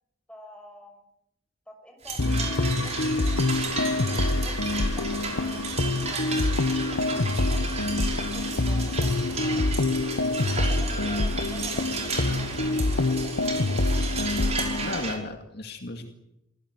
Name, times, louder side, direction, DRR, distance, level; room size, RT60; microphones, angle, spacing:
voice 1, 0.3-1.0 1.7-3.7 4.0-6.4 6.9-9.7 10.2-13.8, equal, 5° left, 2 dB, 6.7 m, -48 dB
sound 1, 2.0-15.1, right 4 dB, 35° right, 5.6 m, -34 dB
sound 2, 2.2-15.0, left 2 dB, 75° left, 1.2 m, -26 dB
voice 2, 14.8-16.1, left 2 dB, 50° left, 4 dB, 2.3 m, -34 dB
27.0 x 17.0 x 9.6 m, 0.87 s
head